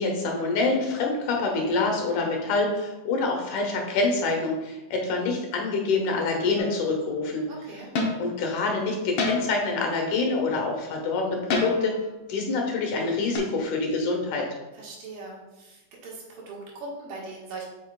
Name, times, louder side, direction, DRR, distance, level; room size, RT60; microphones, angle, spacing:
voice 1, 0.0-7.5 8.2-11.9 12.3-14.4, left 3 dB, 70° left, 1 dB, 2.4 m, -26 dB
sound 1, 6.6-6.9 7.9-8.3 9.2-9.7 11.5-12.0 13.3-13.4, left 3 dB, 90° left, 1.1 m, -28 dB
voice 2, 7.5-7.9 14.7-17.6, right 3 dB, 90° right, -3 dB, 3.1 m, -40 dB
7.4 x 5.7 x 2.3 m, 1.1 s
omnidirectional pair, 3.8 m